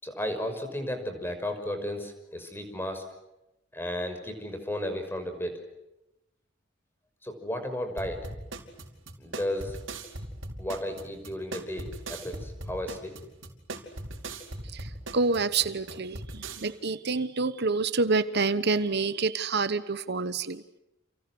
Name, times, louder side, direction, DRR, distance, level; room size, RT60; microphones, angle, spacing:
voice 1, 0.0-3.0 3.7-5.6 7.2-8.3 9.2-9.8 10.6-13.2, left 1 dB, 10° left, 7 dB, 6.0 m, -34 dB
sound 1, 8.0-16.7, right 2 dB, 85° right, 4.9 m, -40 dB
voice 2, 14.7-20.6, right 4 dB, 60° right, 13 dB, 1.1 m, -28 dB
30.0 x 29.5 x 6.3 m, 0.91 s
head